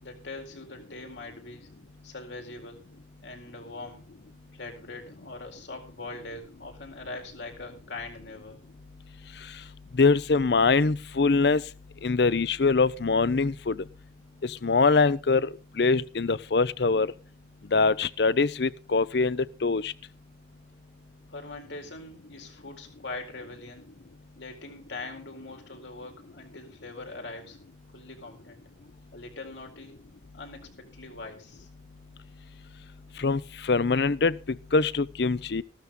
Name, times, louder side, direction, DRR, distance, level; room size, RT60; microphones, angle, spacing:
voice 1, 0.0-1.7 2.0-2.9 3.2-4.0 4.5-8.6 21.3-23.9 24.3-27.6 27.9-28.6 29.1-30.0 30.3-31.7, left 2 dB, 85° left, 4.3 m, -42 dB
voice 2, 10.0-11.6 12.0-13.8 14.4-17.1 17.7-19.9 33.2-35.6, left 4 dB, 60° left, 0.6 m, -23 dB
15.0 x 13.0 x 3.8 m
head